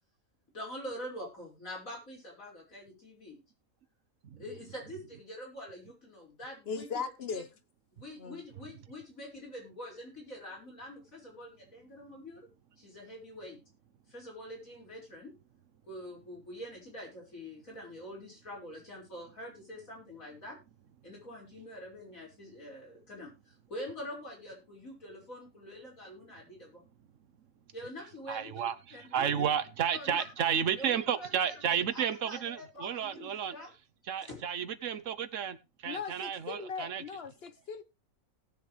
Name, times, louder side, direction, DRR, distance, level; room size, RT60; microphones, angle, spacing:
voice 1, 0.5-3.4 4.4-7.0 8.0-12.5 12.8-13.6 14.1-15.3 15.8-20.6 21.0-26.8 27.7-29.5 29.9-30.5 30.8-31.3 31.5-33.7 34.2-34.4, left 1 dB, 80° left, 5.9 m, -45 dB
voice 2, 6.7-7.5 8.2-8.4 35.8-37.8, left 5 dB, 50° left, 1.2 m, -38 dB
voice 3, 28.3-33.6 34.1-37.0, right 8 dB, 70° right, 1.2 m, -32 dB
18.5 x 7.0 x 3.3 m
omnidirectional pair, 1.4 m